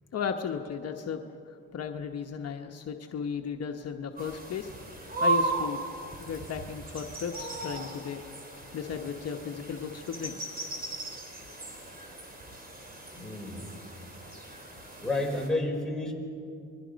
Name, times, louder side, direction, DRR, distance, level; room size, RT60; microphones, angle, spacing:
voice 1, 0.1-4.7 5.2-5.8 6.2-8.2 8.5-10.4 14.2-14.4, left 6 dB, 55° left, 3 dB, 1.1 m, -35 dB
sound 1, 4.2-15.5, right 3 dB, 30° right, 4.0 m, -36 dB
voice 2, 13.1-13.7 15.0-16.1, left 2 dB, ahead, -1 dB, 4.3 m, -31 dB
27.0 x 21.0 x 5.2 m, 2.6 s
cardioid pair, 90°, 30 cm